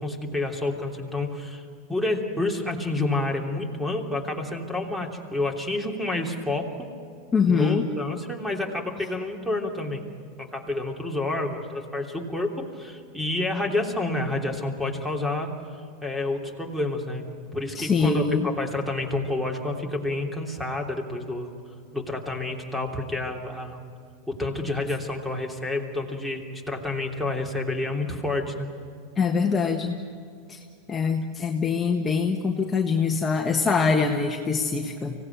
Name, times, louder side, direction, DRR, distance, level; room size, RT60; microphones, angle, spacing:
voice 1, 0.0-1.6 1.9-6.9 7.5-10.0 10.4-15.5 16.0-21.5 21.9-23.8 24.3-28.7, left 2 dB, 5° right, 3 dB, 3.2 m, -29 dB
voice 2, 7.3-7.8 17.7-18.5 29.2-30.0 30.5-30.6 30.9-35.1, left 5 dB, 20° left, 2 dB, 1.5 m, -23 dB
25.0 x 17.5 x 9.3 m, 2.3 s
hypercardioid pair, 105°, 0 cm